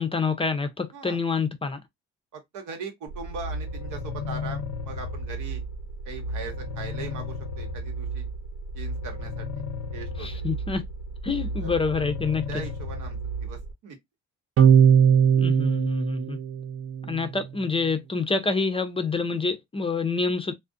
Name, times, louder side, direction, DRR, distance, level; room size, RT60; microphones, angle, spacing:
voice 1, 0.0-1.8 10.2-10.8 11.2-12.5 15.4-16.4 17.0-20.5, left 4 dB, 20° left, 0.4 m, -27 dB
voice 2, 2.3-5.6 6.0-8.3 8.7-9.6 9.9-10.3 11.6-11.7 12.5-14.0, right 4 dB, 85° right, 0.9 m, -40 dB
sound 1, 3.1-13.7, equal, 90° left, 0.6 m, -33 dB
sound 2, 14.6-17.2, right 8 dB, 50° right, 0.5 m, -19 dB
2.4 x 2.1 x 2.4 m
cardioid pair, 90°, 30 cm